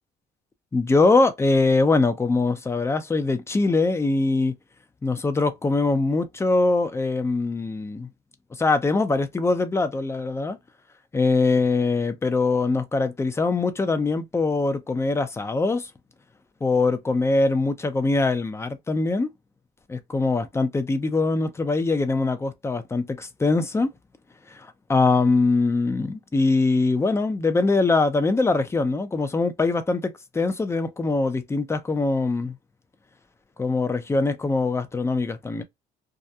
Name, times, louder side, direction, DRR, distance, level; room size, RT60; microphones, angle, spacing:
voice 1, 0.7-4.5 5.0-8.1 8.5-10.6 11.1-15.9 16.6-19.3 19.9-23.9 24.5-32.6 33.6-35.6, left 3 dB, 15° left, 0.5 m, -22 dB
2.4 x 2.1 x 2.7 m
cardioid pair, 110°, 17 cm